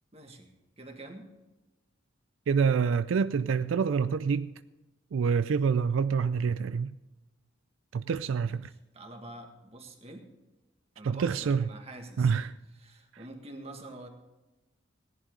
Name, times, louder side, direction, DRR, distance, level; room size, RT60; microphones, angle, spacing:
voice 1, 0.1-1.3 8.4-10.3 11.0-12.3 12.8-14.1, right 2 dB, 30° right, 1.8 m, -47 dB
voice 2, 2.5-4.5 5.1-6.9 7.9-8.7 11.0-11.6 12.2-12.5 13.1-13.2, right 6 dB, 80° right, 0.4 m, -27 dB
17.0 x 11.0 x 3.8 m
head